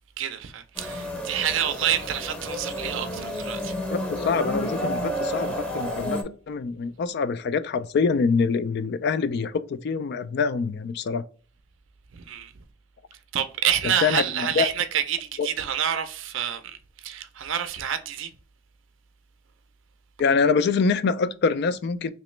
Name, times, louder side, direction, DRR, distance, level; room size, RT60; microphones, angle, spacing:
voice 1, 0.2-3.7 12.1-12.5 13.3-18.3, right 9 dB, 65° right, 0.5 m, -28 dB
sound 1, 0.8-6.2, equal, 5° left, 0.6 m, -30 dB
voice 2, 3.9-11.2 14.0-14.7 15.4-15.5 20.2-22.1, left 5 dB, 55° left, 0.3 m, -25 dB
3.0 x 3.0 x 3.1 m
head